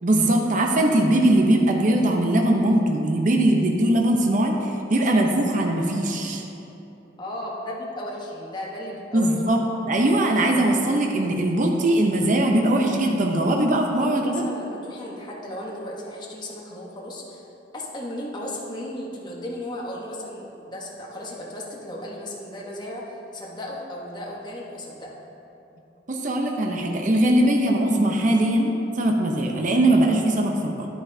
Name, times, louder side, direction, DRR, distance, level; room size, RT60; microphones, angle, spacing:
voice 1, 0.0-6.4 9.1-14.4 26.1-30.9, right 1 dB, 45° right, 1 dB, 0.7 m, -21 dB
voice 2, 7.2-9.3 14.0-17.5 17.7-25.1, left 1 dB, 25° left, -3 dB, 1.1 m, -35 dB
10.5 x 9.0 x 2.7 m, 2.9 s
head